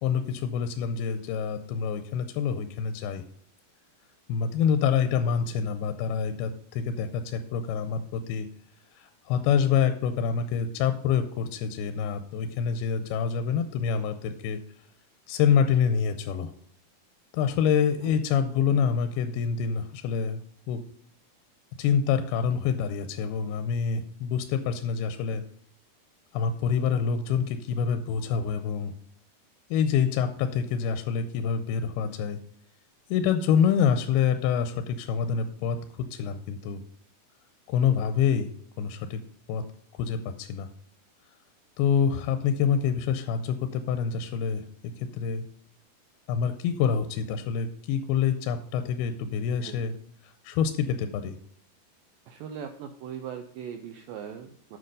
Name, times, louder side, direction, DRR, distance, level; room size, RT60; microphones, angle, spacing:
voice 1, 0.0-3.2 4.3-8.5 8.9-14.6 15.3-16.5 17.3-20.4 20.7-20.8 21.8-25.4 26.3-28.9 29.7-32.4 33.1-36.8 37.7-39.2 39.5-39.6 39.9-40.7 41.8-45.5 46.3-49.9 50.2-51.4, left 7 dB, 85° left, 9 dB, 2.5 m, -26 dB
voice 2, 52.3-54.8, right 8 dB, 85° right, 6 dB, 2.0 m, -40 dB
7.7 x 6.0 x 5.3 m, 0.62 s
omnidirectional pair, 4.6 m